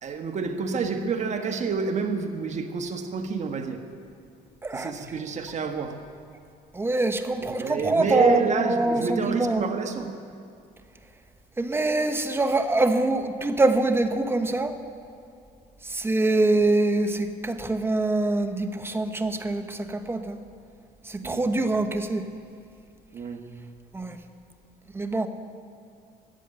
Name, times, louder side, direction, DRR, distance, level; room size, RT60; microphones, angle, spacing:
voice 1, 0.0-3.8 4.7-6.0 7.4-10.1 21.2-21.6 23.1-23.6, right 5 dB, 45° right, 6 dB, 1.2 m, -29 dB
voice 2, 6.7-9.7 11.6-14.7 15.8-20.4 21.1-22.2 23.9-24.2 24.9-25.3, right 2 dB, 15° right, 7 dB, 1.0 m, -24 dB
14.0 x 8.2 x 8.9 m, 2.4 s
cardioid pair, 110°, 17 cm